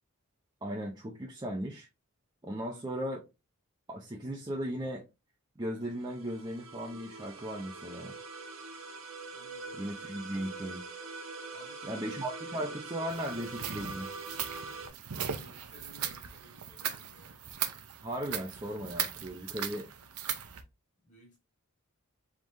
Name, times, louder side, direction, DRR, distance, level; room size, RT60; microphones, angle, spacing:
voice 1, 0.6-1.9 2.4-3.2 3.9-5.1 5.6-8.2 9.8-10.8 11.8-14.1 18.0-19.9, equal, 20° right, 0.6 m, -37 dB
voice 2, 2.6-2.9 9.3-9.9 11.5-12.2 12.5-13.4 15.3-17.4 21.0-21.4, left 1 dB, 35° left, 1.9 m, -56 dB
sound 1, 5.8-14.9, right 3 dB, 65° right, 1.1 m, -44 dB
sound 2, 13.1-20.6, right 9 dB, 80° right, 0.7 m, -38 dB
4.7 x 3.7 x 2.6 m
head